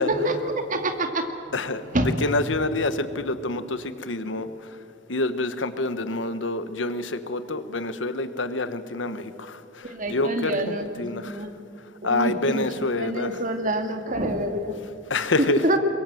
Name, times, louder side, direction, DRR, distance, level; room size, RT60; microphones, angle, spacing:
voice 1, 0.0-1.5 1.9-2.1 9.8-11.5 12.0-14.8 15.6-15.8, right 1 dB, 45° right, 6 dB, 2.1 m, -27 dB
voice 2, 2.2-4.5 5.1-11.4 12.0-13.4 15.1-15.6, left 2 dB, 80° left, 11 dB, 1.3 m, -27 dB
24.0 x 22.5 x 7.8 m, 2.6 s
head